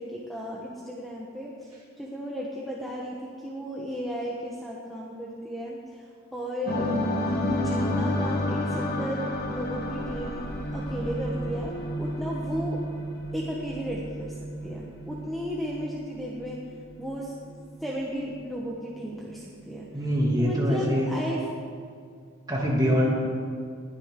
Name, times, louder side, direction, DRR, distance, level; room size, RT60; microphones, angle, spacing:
voice 1, 0.0-10.5 10.7-12.8 13.3-14.3 14.6-16.6 17.0-17.3 17.8-20.0 20.4-21.5, equal, ahead, -4 dB, 1.1 m, -35 dB
sound 1, 6.7-12.6, left 2 dB, 50° left, 1.5 m, -29 dB
sound 2, 9.3-20.7, right 1 dB, 65° left, 3.7 m, -37 dB
voice 2, 19.9-21.1 22.5-23.1, equal, 20° right, -4 dB, 2.4 m, -24 dB
21.0 x 9.8 x 3.7 m, 2.2 s
head